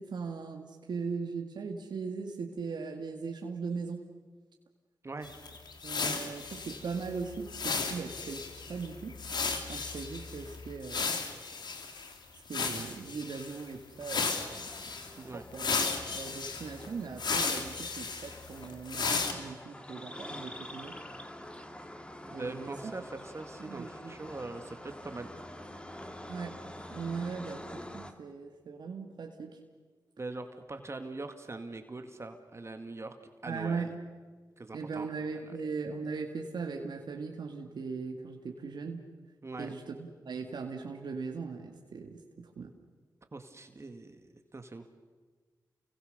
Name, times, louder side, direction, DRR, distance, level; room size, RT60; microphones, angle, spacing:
voice 1, 0.0-4.0 5.8-9.2 9.7-11.2 12.4-14.7 15.2-15.8 16.1-20.9 22.3-22.9 23.7-24.1 26.3-26.6 26.9-29.6 33.5-33.9 34.7-39.0 39.6-42.7, right 5 dB, 75° right, 3 dB, 2.0 m, -39 dB
sound 1, 5.2-12.1 12.5-13.6 14.0-15.1 15.5-19.3, left 4 dB, 75° left, 2.7 m, -35 dB
sound 2, 14.4-28.1, left 1 dB, 15° left, 2.3 m, -47 dB
voice 2, 22.2-25.3 30.2-33.2 33.4-33.9 34.6-35.1 35.4-35.5 39.4-39.7 43.3-44.9, right 3 dB, 40° right, 7 dB, 2.0 m, -42 dB
29.5 x 23.0 x 6.8 m, 1.4 s
cardioid pair, 60°, 8 cm